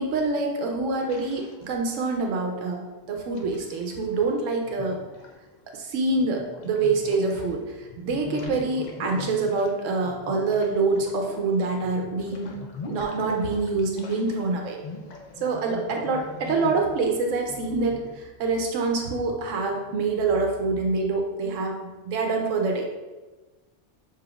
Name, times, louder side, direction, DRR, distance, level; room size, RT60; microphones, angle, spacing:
voice 1, 0.0-5.0 5.7-12.6 12.9-14.8 15.4-21.8 22.0-22.9, right 3 dB, 90° right, 2 dB, 1.0 m, -26 dB
sound 1, 1.0-2.1 2.9-4.2 4.6-7.5 7.8-14.4 14.7-18.1, left 3 dB, 55° left, 0.5 m, -42 dB
6.7 x 3.1 x 2.3 m, 1.2 s
omnidirectional pair, 1.3 m